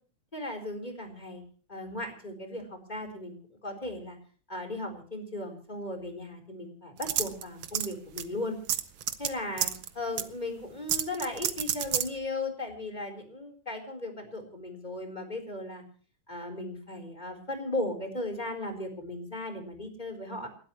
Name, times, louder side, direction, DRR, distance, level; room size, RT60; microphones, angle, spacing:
voice 1, 0.3-1.4 1.7-4.2 4.5-8.6 9.2-9.7 10.0-15.8 16.3-20.5, left 2 dB, 15° left, 3 dB, 4.1 m, -36 dB
sound 1, 7.0-7.9 8.2-8.3 8.7-9.3 9.6-9.9 10.2-10.3 10.9-12.1, right 10 dB, 85° right, 1.1 m, -29 dB
29.5 x 12.5 x 3.2 m, 0.42 s
omnidirectional pair, 3.6 m